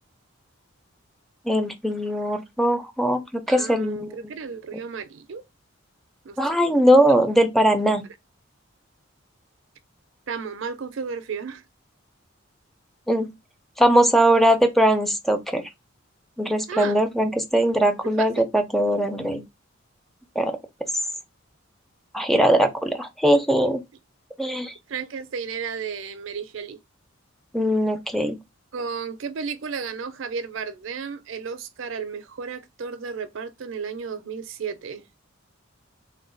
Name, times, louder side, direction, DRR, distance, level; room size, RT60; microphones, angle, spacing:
voice 1, 1.5-4.3 4.7-4.8 6.4-8.0 13.1-13.3 13.8-15.6 16.4-19.4 20.4-20.6 22.1-23.8 24.4-24.7 27.5-28.4, right 1 dB, ahead, 0.4 m, -20 dB
voice 2, 3.5-5.4 6.2-6.6 10.3-11.6 16.7-17.0 18.2-18.5 24.9-26.8 28.7-35.0, right 6 dB, 65° right, 0.5 m, -33 dB
3.1 x 2.2 x 3.8 m
head